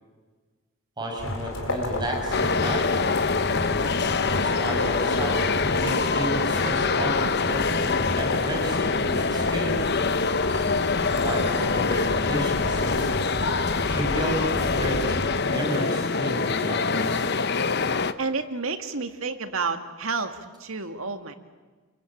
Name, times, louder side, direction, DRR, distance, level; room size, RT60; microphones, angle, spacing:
voice 1, 1.0-3.0 4.4-9.8 11.1-13.1 13.8-17.2, equal, 20° right, 0 dB, 6.3 m, -32 dB
sound 1, 1.2-15.4, left 1 dB, 75° left, 4.5 m, -33 dB
sound 2, 2.3-18.1, left 4 dB, 50° left, 1.0 m, -25 dB
voice 2, 18.2-21.3, right 4 dB, 80° right, 7 dB, 2.2 m, -30 dB
28.0 x 22.5 x 8.8 m, 1.4 s
head